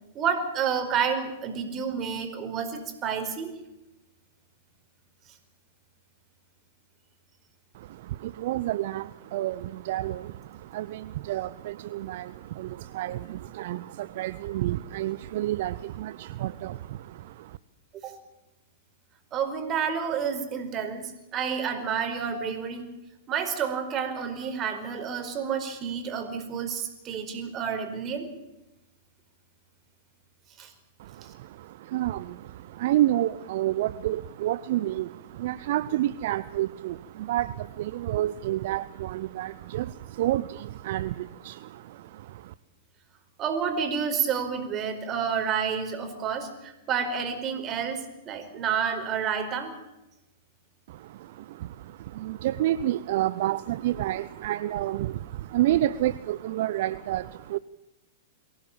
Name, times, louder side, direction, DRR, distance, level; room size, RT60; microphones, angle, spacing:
voice 1, 0.1-3.5 18.0-18.1 19.3-22.9 23.3-28.3 30.6-30.7 43.4-49.7, right 7 dB, 30° right, 7 dB, 4.9 m, -29 dB
voice 2, 7.7-17.6 31.0-42.5 50.9-57.6, right 14 dB, 60° right, 15 dB, 0.7 m, -30 dB
23.5 x 17.0 x 8.6 m, 0.97 s
hypercardioid pair, 105°, 0 cm